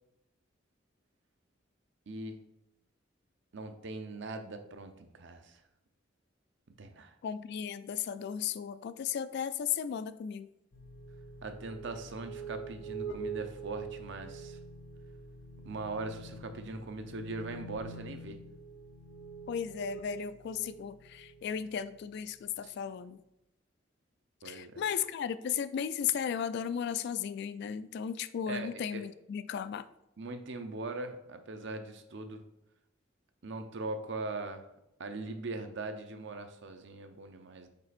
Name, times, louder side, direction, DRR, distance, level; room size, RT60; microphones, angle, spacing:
voice 1, 2.1-2.4 3.5-5.6 6.8-7.2 11.4-14.6 15.6-18.4 22.6-22.7 24.4-24.9 28.5-29.0 30.2-32.4 33.4-34.7 35.0-37.7, right 2 dB, 65° right, 7 dB, 0.7 m, -40 dB
voice 2, 7.2-10.5 19.5-23.2 24.4-29.9, left 8 dB, 60° left, 14 dB, 0.3 m, -35 dB
sound 1, 10.7-22.1, right 4 dB, 80° left, 0.7 m, -45 dB
5.3 x 4.3 x 4.1 m, 0.85 s
head